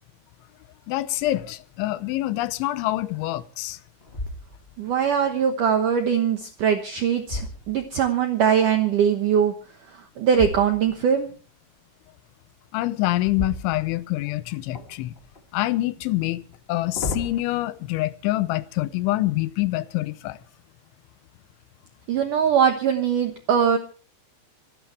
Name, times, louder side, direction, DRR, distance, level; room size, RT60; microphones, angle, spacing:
voice 1, 0.9-3.8 12.7-15.1 15.5-16.4 16.7-20.4, left 17 dB, 90° left, 3.2 m, -26 dB
sound 1, 1.2-1.6 2.2-2.3 2.9-3.5 4.0-4.9 6.6-8.2 10.3-11.1 13.2-14.3 14.7-15.5 16.5-17.4, left 2 dB, 25° left, 1.3 m, -35 dB
voice 2, 4.8-7.4 7.7-9.5 10.2-11.3 22.1-23.8, right 7 dB, 70° right, 2.1 m, -21 dB
26.0 x 12.5 x 3.3 m
omnidirectional pair, 5.2 m